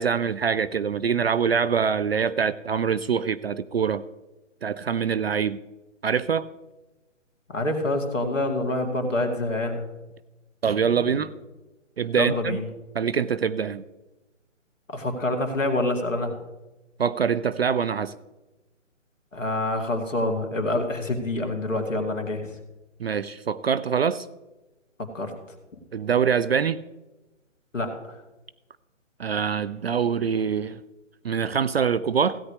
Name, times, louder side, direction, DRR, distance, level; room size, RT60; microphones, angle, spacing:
voice 1, 0.0-4.0 4.6-5.6 6.0-6.5 10.6-11.3 12.0-12.6 12.9-13.8 17.0-18.1 23.0-24.3 25.9-26.8 29.2-30.8 31.2-32.4, right 7 dB, 55° right, 16 dB, 0.4 m, -24 dB
voice 2, 7.5-9.8 10.9-11.2 12.1-12.6 14.9-16.3 19.3-22.5 25.1-25.3 27.7-28.2, left 2 dB, 80° left, 4 dB, 2.3 m, -26 dB
16.5 x 9.5 x 3.2 m, 1.1 s
figure-of-eight pair, 145°, 38 cm